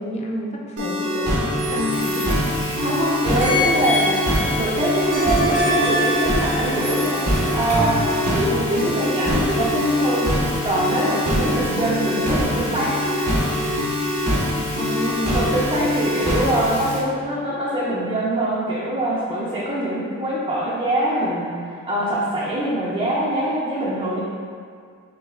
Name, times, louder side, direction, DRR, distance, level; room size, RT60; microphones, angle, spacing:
voice 1, 0.0-1.4 1.7-2.3 14.7-15.5, equal, 30° left, -1 dB, 0.5 m, -29 dB
sound 1, 0.8-16.8, left 1 dB, 75° right, 0.9 m, -24 dB
sound 2, 1.6-3.0 3.4-8.5, equal, 90° right, 1.3 m, -25 dB
Bathtub (filling or washing), 1.9-17.0, left 2 dB, 75° left, 1.1 m, -36 dB
voice 2, 2.8-4.2 4.5-7.3 7.5-13.0 13.3-13.5 15.3-24.2, right 1 dB, 25° right, -8 dB, 0.6 m, -23 dB
6.3 x 3.0 x 2.3 m, 2.1 s
head